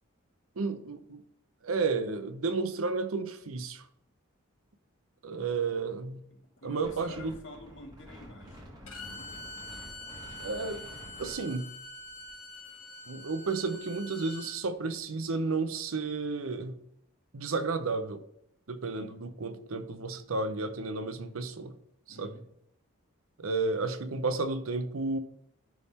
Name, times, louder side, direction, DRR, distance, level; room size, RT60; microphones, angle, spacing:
voice 1, 0.6-1.2 1.6-3.8 5.2-6.2 6.6-7.3 10.4-10.9 11.2-11.7 13.1-16.8 17.3-18.2 18.7-21.7 22.1-22.3 23.4-25.2, right 3 dB, 85° right, 0.7 m, -32 dB
voice 2, 6.3-9.4 18.9-19.2 22.1-22.5, left 1 dB, 60° left, 1.7 m, -49 dB
Wind, 6.8-12.3, equal, 20° right, 1.5 m, -49 dB
Bowed string instrument, 8.9-14.6, left 1 dB, 85° left, 2.5 m, -45 dB
11.0 x 3.6 x 4.2 m
head